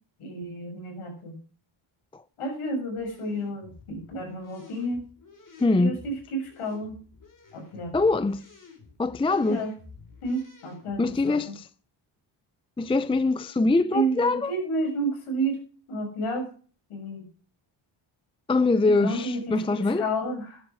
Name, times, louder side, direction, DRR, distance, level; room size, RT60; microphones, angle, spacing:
voice 1, 0.2-1.4 2.4-5.1 5.8-7.0 7.5-7.9 9.3-9.7 10.2-11.5 13.9-15.6 15.9-16.5 16.9-17.3 18.8-20.6, right 1 dB, 90° left, 7.1 m, -31 dB
sound 1, 2.9-11.4, left 4 dB, 40° left, 4.5 m, -51 dB
voice 2, 5.6-6.0 7.9-8.4 9.0-9.6 11.0-11.5 12.8-14.5 18.5-20.0, left 3 dB, 10° left, 0.5 m, -23 dB
13.0 x 11.0 x 4.9 m
cardioid pair, 100°, 50 cm